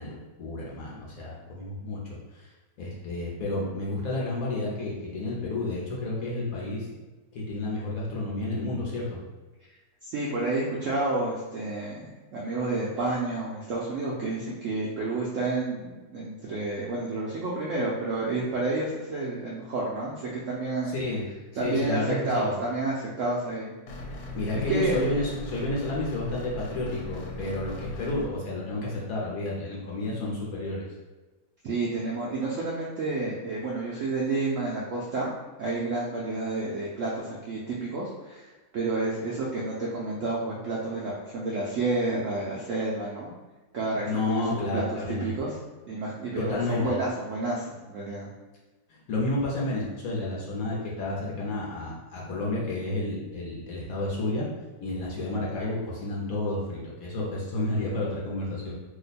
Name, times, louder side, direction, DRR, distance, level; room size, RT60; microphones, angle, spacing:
voice 1, 0.0-2.5 2.8-6.9 7.3-9.2 20.9-21.2 21.6-22.5 24.3-30.9 44.0-45.4 46.4-46.9 48.9-54.5 54.8-58.7, left 2 dB, 65° left, -4 dB, 1.0 m, -31 dB
voice 2, 10.0-20.9 21.6-22.0 22.2-23.7 24.7-25.1 31.6-35.3 35.6-38.5 38.7-43.3 43.7-44.8 45.2-45.5 45.9-48.3, right 2 dB, 75° right, -5 dB, 0.7 m, -30 dB
sound 1, 23.9-28.3, left 1 dB, 80° left, 1.2 m, -38 dB
2.9 x 2.1 x 4.0 m, 1.2 s
omnidirectional pair, 1.9 m